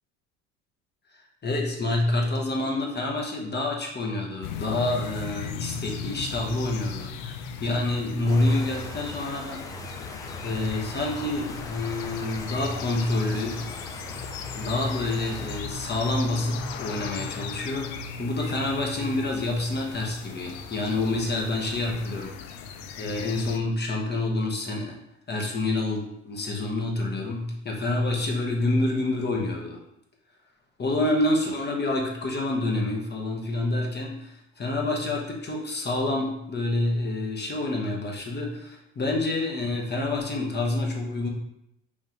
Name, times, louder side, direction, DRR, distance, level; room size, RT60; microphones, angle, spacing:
voice 1, 1.4-9.6 10.4-13.6 14.5-22.6 23.0-25.0 25.3-29.8 30.8-41.3, left 2 dB, 30° left, 0 dB, 1.0 m, -27 dB
sound 1, 4.4-23.6, left 9 dB, 70° left, 0.5 m, -39 dB
sound 2, 5.4-23.6, right 2 dB, 30° right, 1.2 m, -44 dB
Water, 8.3-15.6, left 2 dB, 10° left, 0.5 m, -42 dB
5.3 x 2.5 x 3.1 m, 0.81 s
supercardioid pair, 75°, 35 cm